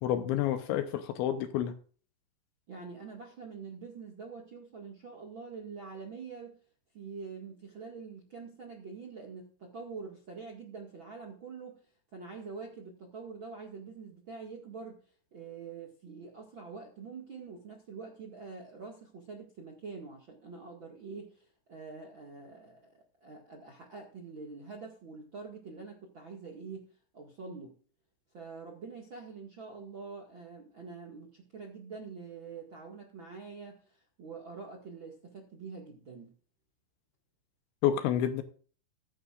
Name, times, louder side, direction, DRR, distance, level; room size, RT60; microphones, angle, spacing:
voice 1, 0.0-1.8 37.8-38.4, left 10 dB, 75° left, 2.9 m, -29 dB
voice 2, 2.7-6.6 6.9-11.8 12.1-15.0 15.3-27.8 28.3-36.3, right 4 dB, 70° right, 1.1 m, -45 dB
15.0 x 12.5 x 2.5 m
omnidirectional pair, 5.7 m